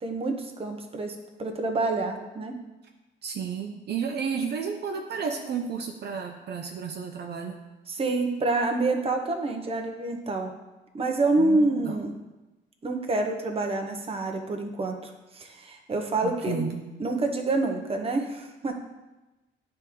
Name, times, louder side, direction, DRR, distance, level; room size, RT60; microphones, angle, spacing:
voice 1, 0.0-2.6 7.9-10.5 10.9-12.1 12.8-16.6 17.0-18.7, right 2 dB, 30° right, 3 dB, 0.9 m, -27 dB
voice 2, 3.2-7.6 11.4-12.0 16.2-16.9, right 6 dB, 55° right, 3 dB, 0.7 m, -32 dB
9.6 x 3.6 x 3.1 m, 1.1 s
cardioid pair, 90°, 20 cm